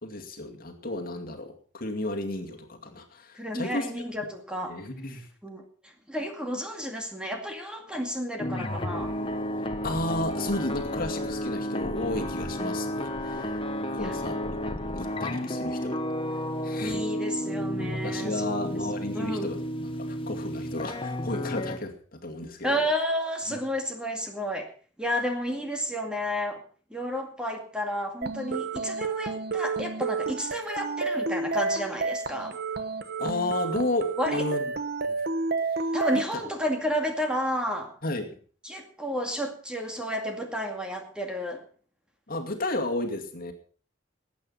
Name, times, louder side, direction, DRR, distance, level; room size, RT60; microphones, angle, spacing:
voice 1, 0.0-3.9 4.7-5.3 9.8-13.6 13.9-14.6 14.9-16.0 16.3-17.0 17.8-22.9 23.5-23.6 33.2-34.7 35.1-35.2 35.7-35.8 36.3-36.4 38.0-38.3 42.3-43.5, left 2 dB, 50° left, 3 dB, 2.3 m, -33 dB
voice 2, 3.3-4.8 5.4-9.2 14.0-14.2 16.8-18.8 19.1-19.6 22.6-24.7 25.0-26.6 26.9-32.6 34.2-34.4 35.9-37.9 38.6-41.6, equal, 5° right, 2 dB, 2.3 m, -31 dB
sound 1, 8.4-21.8, equal, 30° left, 1.2 m, -32 dB
sound 2, 28.2-36.2, right 4 dB, 55° right, 1.1 m, -30 dB
19.0 x 9.0 x 5.6 m, 0.43 s
head